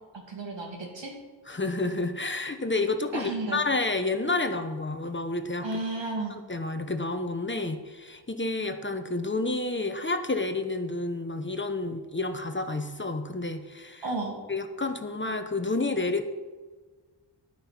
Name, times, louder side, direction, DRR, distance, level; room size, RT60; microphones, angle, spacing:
voice 1, 0.1-1.1 3.1-3.6 5.6-6.4 14.0-14.4, right 2 dB, 85° right, 0 dB, 2.7 m, -33 dB
voice 2, 1.5-5.8 6.5-14.1 14.5-16.3, left 2 dB, 25° left, 7 dB, 0.9 m, -30 dB
11.0 x 9.5 x 5.9 m, 1.4 s
wide cardioid pair, 110°, 43 cm